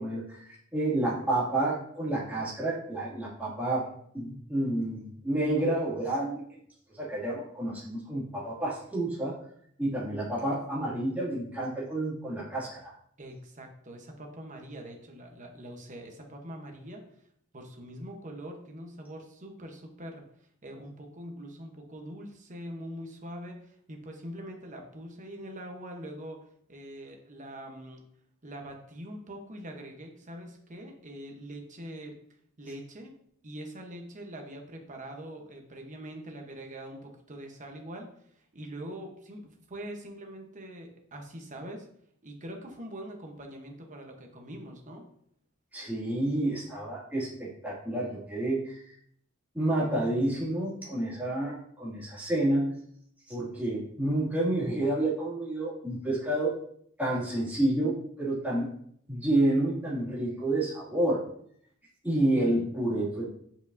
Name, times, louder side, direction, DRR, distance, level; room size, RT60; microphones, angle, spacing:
voice 1, 0.0-3.9 4.1-6.4 6.9-9.3 9.8-12.9 45.7-48.9 49.5-52.9 53.3-56.5 57.0-58.7 59.1-61.2 62.0-63.2, right 1 dB, 10° right, -8 dB, 2.3 m, -29 dB
voice 2, 13.2-17.0 17.5-20.2 20.6-26.4 26.7-28.1 28.4-32.2 32.6-33.1 33.4-38.1 38.3-41.9 42.2-45.1, right 1 dB, 35° right, 2 dB, 1.0 m, -43 dB
7.1 x 5.0 x 2.7 m, 0.67 s
head